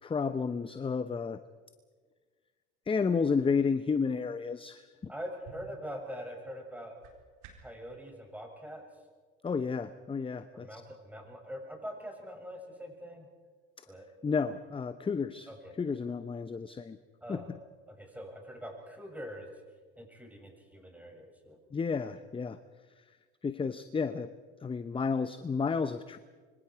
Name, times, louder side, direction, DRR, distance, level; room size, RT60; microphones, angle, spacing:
voice 1, 0.0-1.4 2.9-5.1 9.4-10.8 13.8-13.9 14.2-15.5 15.8-17.0 17.3-17.4 21.7-22.6 23.4-24.3 24.6-26.2, left 5 dB, 20° left, 12 dB, 0.9 m, -31 dB
voice 2, 5.1-7.0 7.6-8.8 10.5-13.3 13.9-14.1 15.5-15.7 17.2-17.5 17.9-19.5 20.0-21.6, equal, 5° right, 2 dB, 7.3 m, -43 dB
String tightens and whips, 5.4-7.8, right 5 dB, 65° right, 4.3 m, -55 dB
25.5 x 24.5 x 4.8 m, 1.5 s
hypercardioid pair, 75°, 30 cm